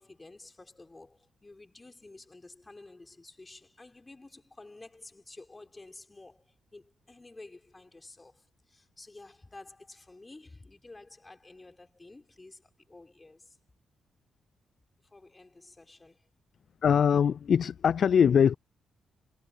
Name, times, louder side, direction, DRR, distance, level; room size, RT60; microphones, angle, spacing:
voice 1, 0.0-13.6 15.1-16.3, left 2 dB, 20° left, 5.3 m, -51 dB
voice 2, 16.8-18.5, left 7 dB, 60° left, 0.3 m, -22 dB
cardioid pair, 80°, 0 cm